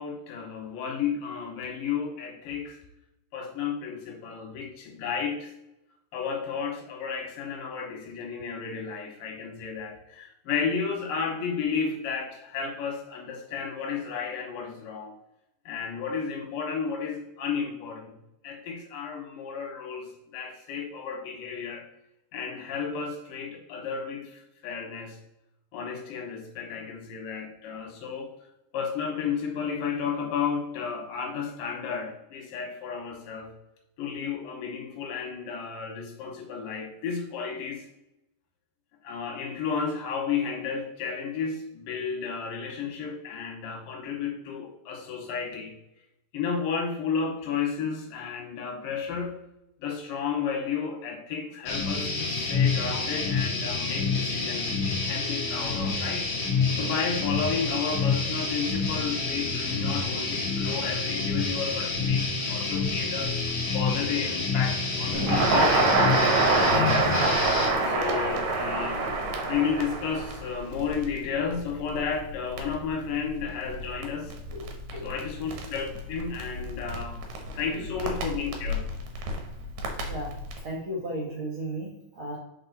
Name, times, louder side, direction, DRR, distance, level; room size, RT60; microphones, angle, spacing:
voice 1, 0.0-2.8 3.3-5.5 6.1-15.2 15.7-18.2 18.4-21.9 22.3-25.2 25.7-28.3 28.7-33.5 34.0-37.8 39.0-45.8 46.3-49.4 49.8-56.3 56.7-63.3 63.7-67.2 67.8-69.1 69.4-74.3 75.0-77.2 77.6-78.9, left 6 dB, 85° left, 2 dB, 2.7 m, -32 dB
sound 1, 51.6-67.7, left 4 dB, 50° left, 1.3 m, -28 dB
Crackle, 65.1-80.6, right 2 dB, 75° right, 2.5 m, -28 dB
voice 2, 74.5-75.1 80.1-80.3 80.6-82.4, right 1 dB, 60° right, -4 dB, 1.4 m, -35 dB
5.4 x 4.6 x 3.9 m, 0.86 s
omnidirectional pair, 3.8 m